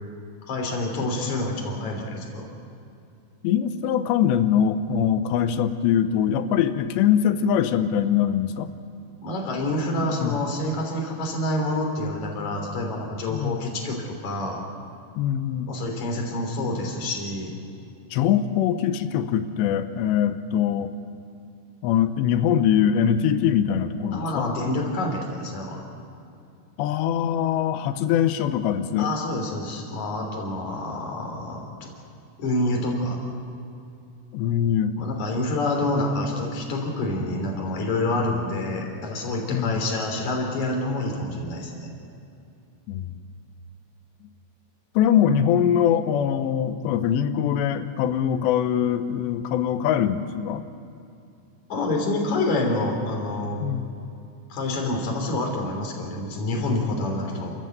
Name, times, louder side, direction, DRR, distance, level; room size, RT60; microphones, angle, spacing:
voice 1, 0.5-2.5 9.2-14.6 15.7-17.5 24.1-25.8 29.0-31.9 32.4-33.2 35.0-41.9 51.7-53.6 54.5-57.5, left 2 dB, 45° left, 1 dB, 4.4 m, -27 dB
voice 2, 3.4-8.7 10.2-10.4 13.3-13.6 15.2-15.7 18.1-20.9 21.8-24.5 26.8-29.1 34.3-34.9 38.2-38.3 38.7-38.9 39.5-39.7 42.9-43.1 45.0-50.6 53.6-53.9, left 9 dB, 90° left, 10 dB, 3.1 m, -22 dB
29.0 x 14.5 x 8.0 m, 2.6 s
omnidirectional pair, 4.9 m